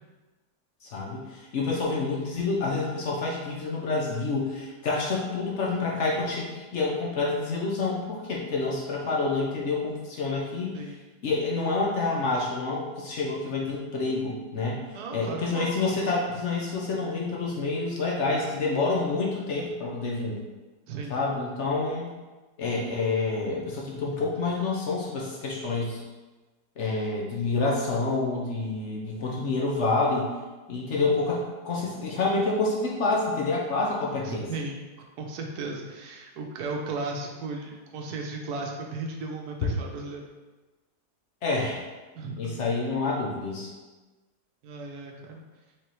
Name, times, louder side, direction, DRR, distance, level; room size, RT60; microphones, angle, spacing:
voice 1, 0.8-10.8 11.2-14.8 15.1-20.4 21.1-22.1 22.6-26.0 26.8-30.3 30.7-31.4 31.6-34.5 41.4-41.8 42.4-43.7, left 3 dB, 55° left, -3 dB, 0.9 m, -28 dB
voice 2, 14.9-15.7 20.9-21.2 34.2-34.8 35.2-40.2 42.1-42.6 44.6-45.4, right 3 dB, 75° right, 1 dB, 1.2 m, -35 dB
4.7 x 3.5 x 3.0 m, 1.2 s
omnidirectional pair, 1.7 m